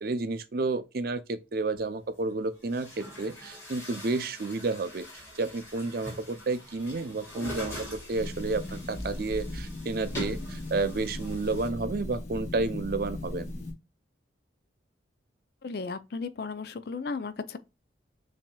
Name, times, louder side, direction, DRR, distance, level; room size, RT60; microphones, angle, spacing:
voice 1, 0.0-5.1 5.3-13.5, right 3 dB, 50° right, 0.5 m, -31 dB
Chatter / Gurgling / Tap, 1.8-1.9 2.6-11.7, left 1 dB, 15° left, 2.1 m, -43 dB
sound 1, 8.1-13.7, left 1 dB, 35° left, 1.0 m, -37 dB
voice 2, 15.6-17.6, left 4 dB, 55° left, 0.4 m, -35 dB
7.1 x 2.8 x 2.3 m
head